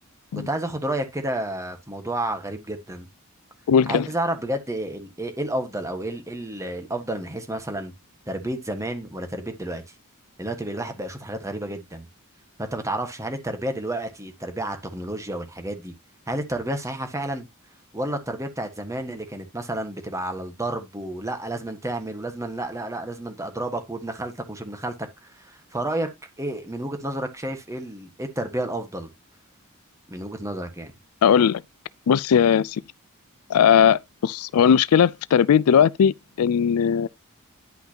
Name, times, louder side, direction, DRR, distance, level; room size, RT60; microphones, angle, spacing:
voice 1, 0.5-3.1 3.9-7.9 8.3-9.8 10.4-12.0 12.6-15.9 16.3-17.5 17.9-24.9 25.2-26.1 26.4-29.1 30.1-30.9, right 1 dB, 15° right, 1.4 m, -30 dB
voice 2, 3.7-4.1 31.2-31.6 32.1-32.8 33.5-37.1, left 7 dB, 90° left, 0.4 m, -18 dB
10.5 x 5.7 x 2.8 m
head